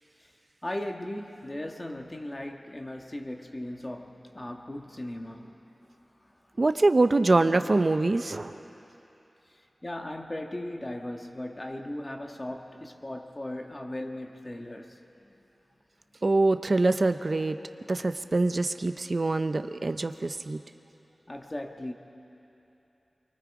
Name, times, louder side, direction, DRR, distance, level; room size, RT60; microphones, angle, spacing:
voice 1, 0.6-6.6 9.8-15.3 21.3-21.9, left 1 dB, 25° left, 3 dB, 1.6 m, -38 dB
voice 2, 6.6-8.6 16.2-17.6 17.9-20.6, right 2 dB, 50° right, 9 dB, 0.8 m, -24 dB
28.5 x 23.5 x 4.9 m, 3.0 s
wide cardioid pair, 75°, 0 cm